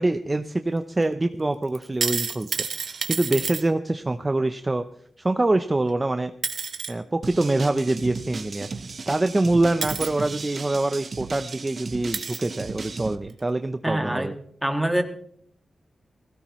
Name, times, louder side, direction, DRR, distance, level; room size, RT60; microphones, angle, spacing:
voice 1, 0.0-4.9 5.2-6.3 6.9-14.3, right 2 dB, 25° right, 8 dB, 0.6 m, -25 dB
sound 1, 1.7-3.6 5.9-6.0 6.4-6.9 8.8-8.9 9.8-10.1 11.1-11.2 11.5-11.6 12.1-12.5 13.3-13.4, right 6 dB, 75° right, 1.3 m, -29 dB
sound 2, 7.2-13.2, right 4 dB, 50° right, 1.1 m, -36 dB
voice 2, 13.8-14.3 14.6-15.0, right 1 dB, 5° right, 4 dB, 1.8 m, -24 dB
20.0 x 17.0 x 3.1 m, 0.63 s
wide cardioid pair, 105°, 0 cm